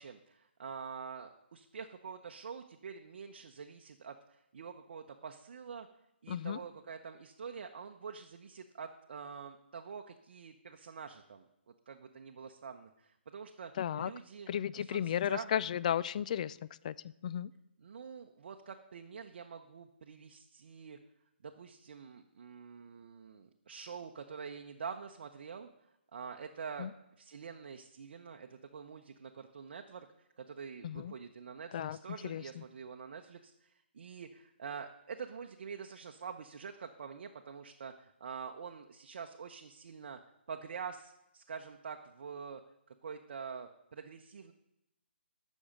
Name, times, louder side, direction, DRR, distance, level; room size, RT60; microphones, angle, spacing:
voice 1, 0.0-5.9 6.2-13.7 14.0-14.5 14.8-15.5 17.8-21.0 21.4-25.7 26.1-26.9 27.2-30.1 30.4-40.2 40.5-42.6 42.9-44.5, right 6 dB, 55° right, 4 dB, 0.8 m, -46 dB
voice 2, 6.3-6.6 13.8-14.1 14.5-16.6 16.8-17.5 26.8-26.9 30.8-31.1 31.7-32.0 32.2-32.6, left 9 dB, 40° left, 18 dB, 0.3 m, -34 dB
14.5 x 6.3 x 5.2 m, 0.86 s
hypercardioid pair, 150°, 6 cm